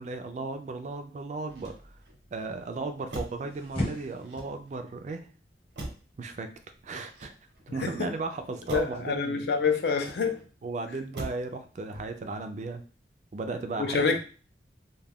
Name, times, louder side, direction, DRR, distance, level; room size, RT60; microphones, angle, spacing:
voice 1, 0.0-1.7 2.3-5.3 6.2-6.5 6.8-7.3 7.7-9.5 10.6-12.8 13.3-14.2, right 3 dB, 40° right, 0.3 m, -35 dB
sound 1, 1.5-9.0, left 1 dB, 30° left, 0.9 m, -41 dB
Motor vehicle (road), 1.5-2.2 3.1-3.5 4.2-4.9 5.8-6.2 7.0-7.8 8.7-9.0 9.9-10.5 11.1-11.5 11.9-12.3, right 1 dB, 85° right, 0.8 m, -42 dB
voice 2, 8.7-10.4 13.8-14.2, left 5 dB, 65° left, 0.4 m, -27 dB
2.3 x 2.2 x 3.4 m
head